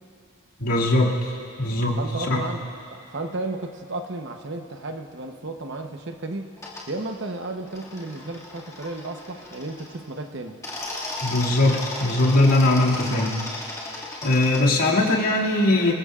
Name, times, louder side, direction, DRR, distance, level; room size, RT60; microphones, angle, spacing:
voice 1, 0.6-2.0 2.3-2.4 11.2-13.8 14.2-15.9, left 2 dB, 85° left, -4 dB, 2.4 m, -21 dB
voice 2, 2.0-6.6 6.9-10.6, right 2 dB, 55° right, 5 dB, 0.9 m, -33 dB
sound 1, 6.6-6.8 7.7-10.0 10.5-14.6, left 2 dB, 15° left, 2.1 m, -35 dB
26.0 x 21.0 x 2.5 m, 2.5 s
head